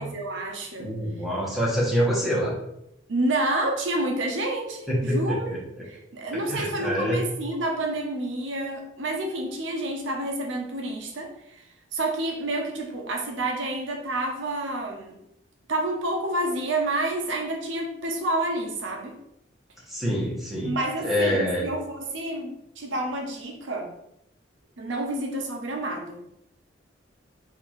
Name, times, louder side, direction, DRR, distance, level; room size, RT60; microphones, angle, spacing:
voice 1, 0.0-0.9 3.1-5.5 5.8-11.6 11.9-15.2 15.7-19.2 20.6-23.9 24.8-26.2, right 1 dB, 75° right, 2 dB, 0.8 m, -29 dB
voice 2, 0.8-2.5 4.9-5.6 6.5-7.2 19.9-20.7 21.0-21.7, equal, ahead, -5 dB, 1.1 m, -26 dB
6.0 x 2.6 x 3.1 m, 0.80 s
head